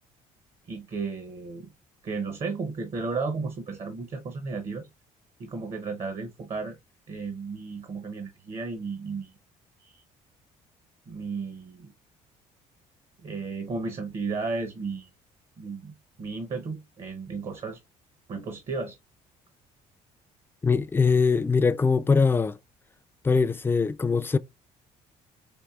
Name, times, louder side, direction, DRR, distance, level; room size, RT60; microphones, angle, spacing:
voice 1, 0.7-1.7 2.0-4.9 5.4-6.8 7.1-9.3 9.8-10.0 11.1-11.9 13.2-15.1 15.6-17.8 18.3-19.0, right 4 dB, 45° right, 0.8 m, -34 dB
voice 2, 20.6-22.6 23.2-24.4, left 5 dB, 15° left, 0.3 m, -22 dB
4.6 x 2.6 x 2.3 m
cardioid pair, 90°, 15 cm